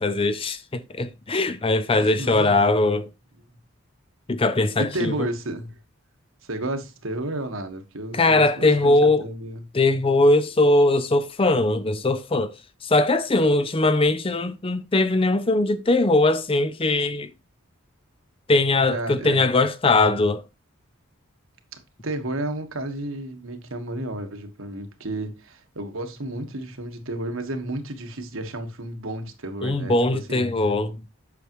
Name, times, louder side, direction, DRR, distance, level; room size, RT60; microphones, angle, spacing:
voice 1, 0.0-3.1 4.3-5.3 8.1-9.2 9.7-12.5 12.8-17.3 18.5-20.4 29.6-31.0, left 2 dB, 25° left, 0.5 m, -20 dB
voice 2, 1.9-2.6 4.8-5.8 6.4-9.6 18.9-19.5 22.0-30.0 30.3-30.5, right 1 dB, 70° right, 1.4 m, -32 dB
8.4 x 6.4 x 3.1 m
head